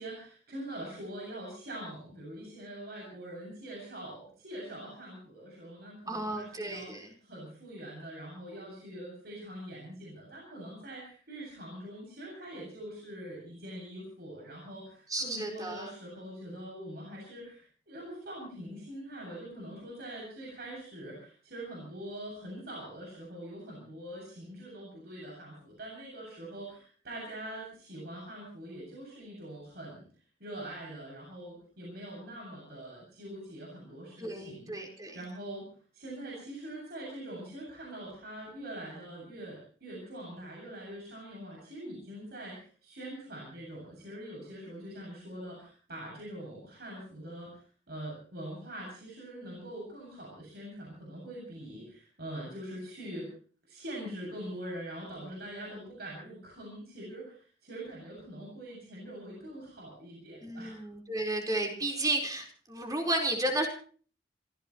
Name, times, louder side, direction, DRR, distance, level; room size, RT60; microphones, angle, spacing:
voice 1, 0.0-30.0 30.4-34.7 35.1-35.7 35.9-47.6 47.9-53.3 53.7-60.8, right 1 dB, 65° right, -2 dB, 7.2 m, -43 dB
voice 2, 6.1-7.1 15.1-15.9 34.2-35.2 60.4-63.7, right 1 dB, 20° right, 1 dB, 4.4 m, -33 dB
27.5 x 16.0 x 3.1 m, 0.42 s
head